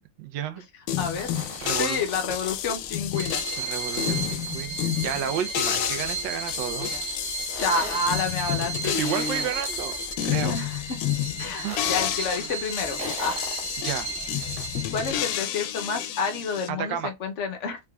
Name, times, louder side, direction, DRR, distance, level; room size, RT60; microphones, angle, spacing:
voice 1, 0.2-0.6 1.6-2.0 3.6-6.9 8.8-10.6 11.6-11.8 12.4-12.5 13.8-14.1 16.7-17.1, right 8 dB, 90° right, 1.3 m, -32 dB
sound 1, 0.9-16.7, left 11 dB, 90° left, 1.3 m, -30 dB
voice 2, 1.0-1.3 1.8-3.4 6.9-7.0 7.6-9.5 10.4-11.0 11.4-13.6 14.9-17.8, left 4 dB, 60° left, 0.8 m, -29 dB
sound 2, 1.0-14.7, equal, 10° right, 1.2 m, -42 dB
Bowed string instrument, 3.1-15.6, right 7 dB, 40° right, 0.9 m, -35 dB
3.5 x 3.5 x 2.2 m
omnidirectional pair, 1.9 m